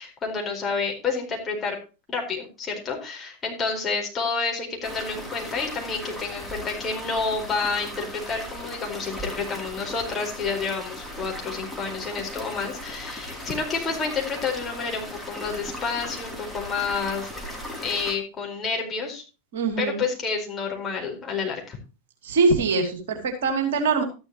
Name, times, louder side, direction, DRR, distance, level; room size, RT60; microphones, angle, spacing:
voice 1, 0.0-1.8 2.1-17.3 17.8-19.2 19.8-21.8, left 4 dB, 20° left, 1 dB, 4.4 m, -29 dB
sound 1, 4.8-18.1, left 1 dB, ahead, 3.0 m, -37 dB
voice 2, 19.5-20.0 22.2-24.0, right 4 dB, 55° right, 5 dB, 2.7 m, -23 dB
13.0 x 11.0 x 3.0 m, 0.31 s
figure-of-eight pair, 90°, 0 cm